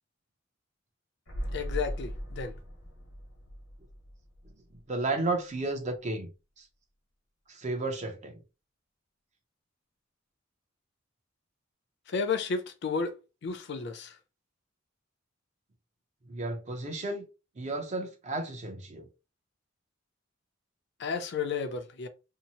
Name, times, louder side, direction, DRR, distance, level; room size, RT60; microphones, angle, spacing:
sound 1, 1.3-5.0 5.3-5.4, equal, 90° left, 1.1 m, -39 dB
voice 1, 1.5-2.5 12.1-13.2 13.4-14.2 21.0-22.1, left 5 dB, 60° left, 0.5 m, -32 dB
voice 2, 4.9-6.3 6.6-6.7 7.5-8.4 16.3-17.3 17.6-19.1, right 2 dB, 35° right, 0.6 m, -33 dB
2.7 x 2.0 x 2.8 m
head